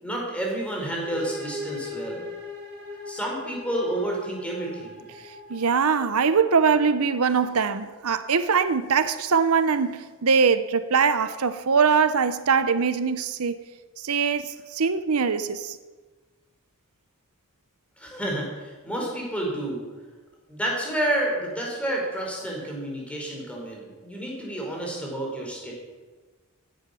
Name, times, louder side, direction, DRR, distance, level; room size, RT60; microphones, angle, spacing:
voice 1, 0.0-2.2 3.1-5.0 18.0-19.8 20.5-25.7, right 1 dB, 5° left, -2 dB, 4.8 m, -30 dB
sound 1, 0.8-8.4, left 2 dB, 50° right, 3.9 m, -41 dB
voice 2, 5.5-13.6 14.0-15.8, right 5 dB, 80° right, 12 dB, 0.8 m, -22 dB
16.0 x 10.5 x 7.0 m, 1.3 s
head